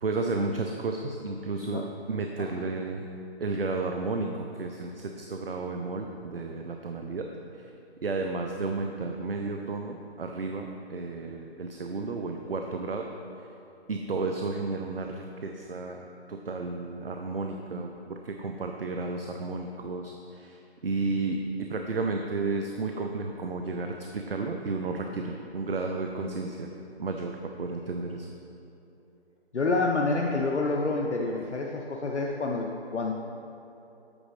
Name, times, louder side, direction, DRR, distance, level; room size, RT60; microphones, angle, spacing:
voice 1, 0.0-3.1 3.4-7.3 7.5-7.7 8.0-13.1 13.9-26.7 27.0-28.3, right 3 dB, 55° right, 3 dB, 0.6 m, -32 dB
voice 2, 29.5-33.1, left 3 dB, 85° left, 0 dB, 0.7 m, -28 dB
8.6 x 5.0 x 5.0 m, 3.0 s
figure-of-eight pair, 170°, 33 cm